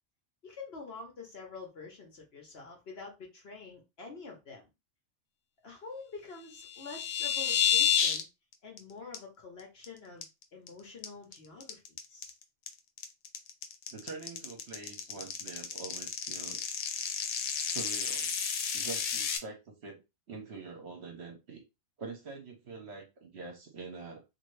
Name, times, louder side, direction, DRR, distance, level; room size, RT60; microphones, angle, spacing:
voice 1, 0.4-4.7 5.6-8.3 8.6-10.2 10.5-11.8 12.1-12.3, left 4 dB, 55° left, 1.0 m, -47 dB
sound 1, 6.5-8.2 8.5-8.8 9.1-9.2 9.6-9.8 10.2-10.7 11.0-19.4, left 8 dB, 90° left, 1.1 m, -31 dB
voice 2, 13.9-16.6 17.5-18.3 18.7-20.0 20.3-21.6 22.0-24.2, right 4 dB, 55° right, 1.0 m, -45 dB
2.7 x 2.6 x 3.1 m
omnidirectional pair, 1.4 m